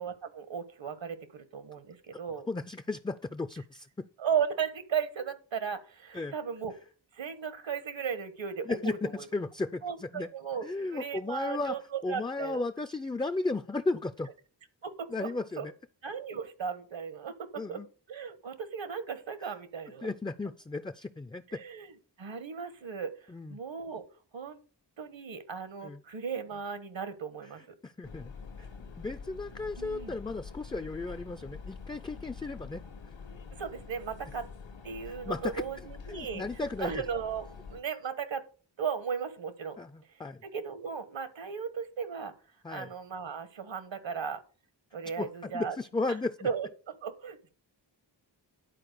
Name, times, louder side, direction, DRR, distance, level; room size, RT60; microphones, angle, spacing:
voice 1, 0.0-2.5 4.2-6.7 7.1-9.2 9.8-10.6 10.9-12.6 14.8-15.3 15.6-15.7 16.0-17.8 18.1-20.1 21.5-21.9 22.2-23.1 23.5-24.0 24.3-24.6 25.0-27.7 29.8-30.1 33.5-34.5 34.8-36.4 36.8-38.5 38.8-39.8 40.5-42.3 42.7-44.4 44.9-45.8 46.4-47.5, right 7 dB, 85° right, 12 dB, 1.4 m, -36 dB
voice 2, 2.5-4.1 6.1-6.3 8.7-10.3 10.6-11.8 12.0-14.3 15.1-15.7 17.6-17.9 20.0-21.6 23.3-23.6 25.8-26.0 27.8-28.3 28.6-28.7 29.0-32.8 33.1-33.2 35.1-35.6 36.1-36.9 39.8-40.4 42.6-42.9 45.2-46.5, left 3 dB, 10° left, 10 dB, 0.3 m, -35 dB
sound 1, 28.0-37.8, left 5 dB, 80° left, 1.4 m, -46 dB
11.0 x 4.6 x 6.5 m, 0.38 s
wide cardioid pair, 110°, 44 cm